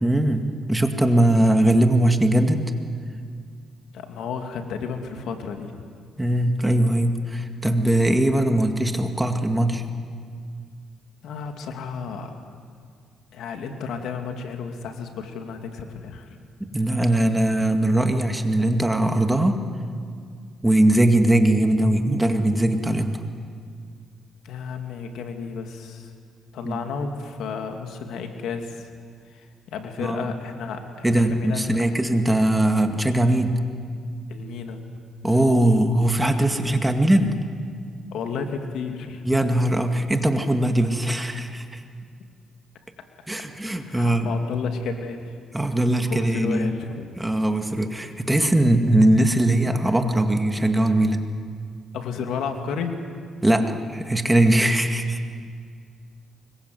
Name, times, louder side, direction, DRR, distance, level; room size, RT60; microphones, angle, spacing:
voice 1, 0.0-2.7 6.2-9.9 16.6-19.6 20.6-23.2 26.6-26.8 30.0-30.4 31.0-33.6 35.2-37.4 39.2-41.8 43.3-44.4 45.5-46.7 47.2-51.3 53.4-55.2, right 1 dB, 10° right, 5 dB, 2.1 m, -20 dB
voice 2, 3.9-5.7 11.2-12.4 13.3-16.4 24.4-26.1 26.5-28.9 29.3-31.8 34.3-34.8 38.1-39.3 43.9-45.3 46.1-47.1 51.9-53.0, left 5 dB, 80° left, 5 dB, 2.5 m, -32 dB
25.0 x 22.5 x 8.0 m, 2.1 s
cardioid pair, 90°, 0 cm